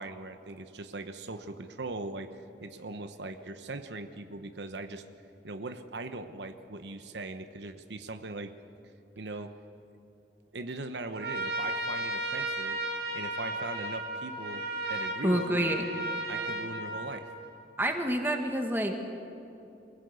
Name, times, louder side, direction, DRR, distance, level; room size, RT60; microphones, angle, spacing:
voice 1, 0.0-5.0 5.4-8.5 9.2-9.5 10.5-12.8 13.1-15.8 16.3-17.3, right 2 dB, 80° right, 8 dB, 1.0 m, -40 dB
Trumpet, 11.1-17.7, right 1 dB, 65° right, 2.2 m, -34 dB
voice 2, 15.2-15.8 17.8-18.9, right 1 dB, 10° right, 3 dB, 1.7 m, -28 dB
23.5 x 16.5 x 8.3 m, 2.8 s
head